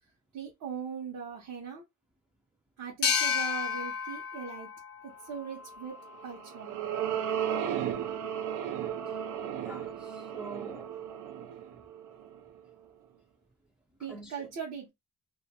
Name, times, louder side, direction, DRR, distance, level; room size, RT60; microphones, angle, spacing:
voice 1, 0.3-1.8 2.8-4.7 5.0-6.0 6.2-6.8 14.0-14.9, right 7 dB, 65° right, 0.8 m, -40 dB
sound 1, 3.0-6.4, left 7 dB, 50° left, 0.7 m, -32 dB
sound 2, 6.1-12.6, right 9 dB, 85° right, 0.5 m, -35 dB
voice 2, 9.6-10.9 14.1-14.5, right 2 dB, 5° right, 0.4 m, -45 dB
2.3 x 2.2 x 2.7 m
cardioid pair, 90°, 30 cm